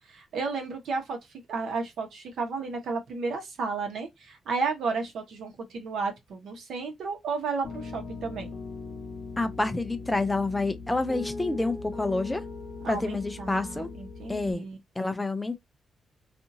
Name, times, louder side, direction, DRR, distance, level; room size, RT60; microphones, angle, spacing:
voice 1, 0.1-1.2 1.5-8.5 12.8-14.8, right 4 dB, 75° right, 1.1 m, -33 dB
Piano, 7.6-14.5, left 3 dB, 45° left, 0.7 m, -39 dB
voice 2, 9.4-12.4 12.9-13.9 14.3-14.6 15.0-15.6, left 2 dB, 10° left, 0.4 m, -28 dB
2.7 x 2.5 x 2.6 m
cardioid pair, 130°, 0 cm